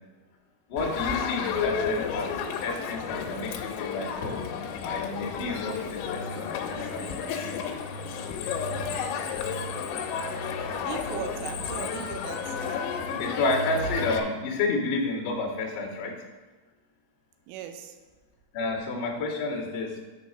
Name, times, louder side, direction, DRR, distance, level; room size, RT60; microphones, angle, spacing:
voice 1, 0.7-2.3 2.6-4.4 4.8-7.6 13.2-16.1 18.5-19.9, left 3 dB, 45° left, -9 dB, 1.6 m, -30 dB
Crowd, 0.8-14.2, left 6 dB, 85° left, 3.2 m, -32 dB
voice 2, 10.8-12.6 17.5-17.9, right 9 dB, 80° right, 6 dB, 3.1 m, -38 dB
9.6 x 4.6 x 5.4 m, 1.3 s
omnidirectional pair, 5.8 m